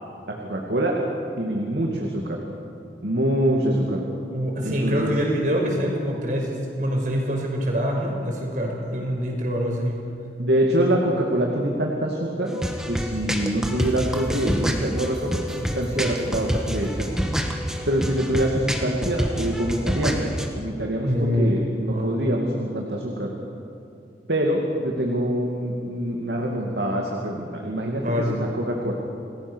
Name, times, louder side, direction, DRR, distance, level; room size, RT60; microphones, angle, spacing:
voice 1, 0.3-0.9 1.4-2.4 3.0-4.0 4.6-5.1 10.4-12.6 12.9-17.1 17.9-23.3 24.3-28.9, right 1 dB, 75° right, 0 dB, 2.4 m, -25 dB
voice 2, 4.3-10.0 21.1-22.3 28.0-28.4, equal, 45° right, 0 dB, 5.5 m, -25 dB
sound 1, 12.5-20.5, equal, 5° right, 1.7 m, -27 dB
28.5 x 20.0 x 6.3 m, 2.6 s
head